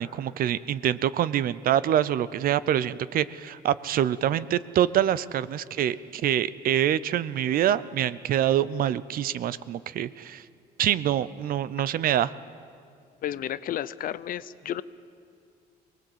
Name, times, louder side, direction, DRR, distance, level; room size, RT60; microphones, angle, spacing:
voice 1, 0.0-10.4 10.8-12.3, right 11 dB, 60° right, 17 dB, 0.6 m, -25 dB
voice 2, 13.2-14.8, left 11 dB, 55° left, 16 dB, 0.7 m, -32 dB
23.5 x 19.5 x 8.0 m, 2.3 s
cardioid pair, 110°, 17 cm